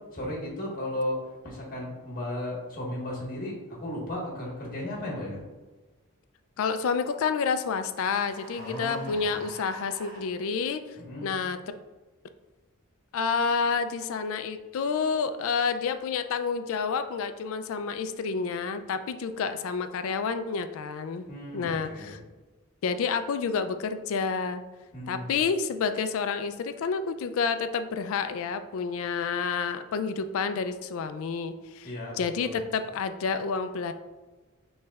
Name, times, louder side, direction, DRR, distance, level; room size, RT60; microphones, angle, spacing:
voice 1, 0.1-1.2 1.4-5.4 8.6-9.4 11.0-11.3 21.3-22.1 24.9-25.3 31.8-32.5, left 1 dB, 40° left, -3 dB, 1.4 m, -35 dB
voice 2, 6.6-10.8 11.2-11.6 13.1-21.2 21.5-22.2 22.8-24.6 25.1-31.9 32.1-33.9, left 5 dB, 65° left, 10 dB, 0.3 m, -29 dB
sound 1, 8.0-10.3, right 1 dB, 45° right, 1.2 m, -46 dB
5.7 x 3.2 x 2.3 m, 1.2 s
head